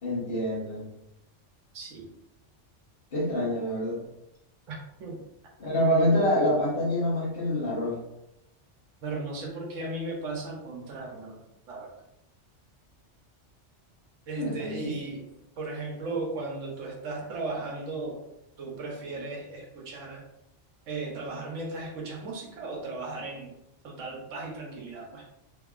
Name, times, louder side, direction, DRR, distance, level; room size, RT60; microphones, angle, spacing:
voice 1, 0.0-0.9 3.1-4.0 5.6-8.0 14.4-14.9, equal, 50° left, -5 dB, 1.1 m, -26 dB
voice 2, 1.7-2.1 4.7-5.2 9.0-11.9 14.3-15.3 15.6-18.2 18.6-20.3 20.9-23.5 23.8-25.3, right 3 dB, 90° right, -1 dB, 1.2 m, -36 dB
2.9 x 2.8 x 2.4 m, 0.85 s
omnidirectional pair, 1.3 m